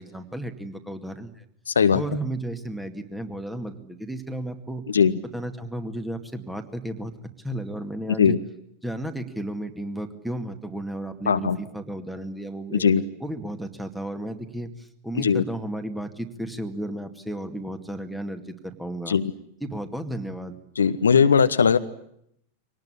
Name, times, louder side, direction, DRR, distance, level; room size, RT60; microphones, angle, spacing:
voice 1, 0.0-1.4 1.9-4.9 5.3-7.1 7.4-8.4 8.8-12.8 13.2-19.2 19.6-20.6, right 1 dB, ahead, 8 dB, 2.2 m, -33 dB
voice 2, 1.7-2.0 4.9-5.2 8.2-8.4 11.3-11.6 12.7-13.0 15.2-15.4 19.1-19.3 20.8-21.8, left 6 dB, 70° left, 11 dB, 1.0 m, -19 dB
24.0 x 18.5 x 9.9 m, 0.73 s
figure-of-eight pair, 90°, 0 cm